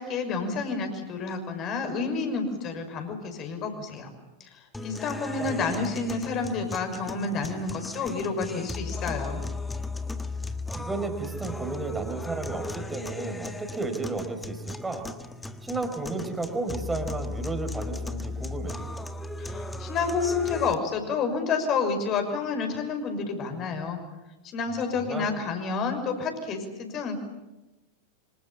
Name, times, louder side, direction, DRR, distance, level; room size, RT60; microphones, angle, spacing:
voice 1, 0.0-4.1 4.8-9.4 19.4-24.0 24.5-27.2, left 4 dB, 35° left, 6 dB, 6.1 m, -29 dB
sound 1, 4.7-20.7, left 2 dB, 10° left, 1.6 m, -36 dB
voice 2, 10.7-15.0 15.6-18.8 25.0-25.3, right 3 dB, 10° right, 6 dB, 4.5 m, -33 dB
27.5 x 26.5 x 7.3 m, 1.0 s
figure-of-eight pair, 90°, 0 cm